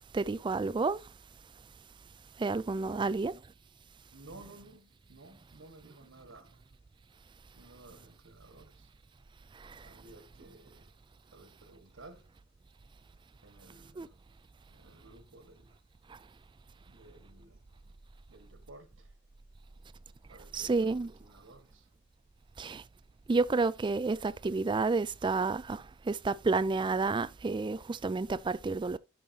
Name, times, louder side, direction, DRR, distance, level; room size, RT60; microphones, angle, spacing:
voice 1, 0.1-1.0 2.4-3.3 14.0-14.1 20.5-21.1 22.6-22.8 23.3-29.0, right 3 dB, 25° right, 0.3 m, -30 dB
voice 2, 2.8-3.1 4.1-6.7 7.5-8.9 9.8-11.0 11.3-12.3 13.4-14.2 14.7-15.8 16.8-17.7 18.3-19.1 20.3-21.9, right 2 dB, 90° right, 1.7 m, -55 dB
11.0 x 5.5 x 2.8 m
head